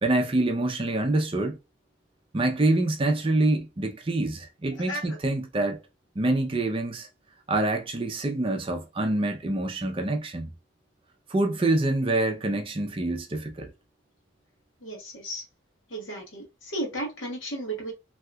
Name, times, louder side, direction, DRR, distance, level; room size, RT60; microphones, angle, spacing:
voice 1, 0.0-1.6 2.3-5.8 6.2-7.1 7.5-10.5 11.3-13.7, right 2 dB, 25° right, 0.5 m, -26 dB
voice 2, 14.8-15.4 15.9-17.9, right 1 dB, 75° left, 1.1 m, -34 dB
2.8 x 2.3 x 3.3 m
head